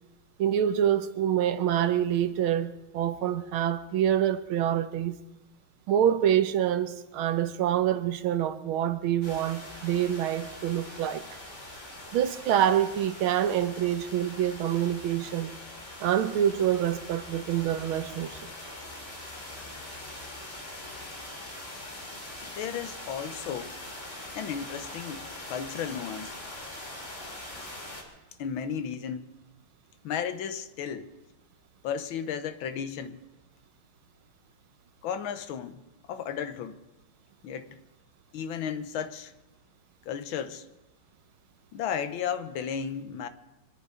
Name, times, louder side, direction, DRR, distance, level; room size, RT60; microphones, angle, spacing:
voice 1, 0.4-5.2 5.9-11.2 12.1-15.5 16.0-18.4, right 10 dB, 85° right, 1.7 m, -26 dB
sound 1, 9.2-28.0, left 1 dB, 35° left, 3.0 m, -42 dB
voice 2, 22.4-23.8 24.3-26.4 28.4-29.3 30.0-31.1 31.8-33.2 35.0-36.8 37.4-37.8 38.3-39.3 40.0-40.7 41.7-43.3, left 8 dB, 80° left, 1.7 m, -34 dB
25.0 x 10.5 x 5.0 m
omnidirectional pair, 2.2 m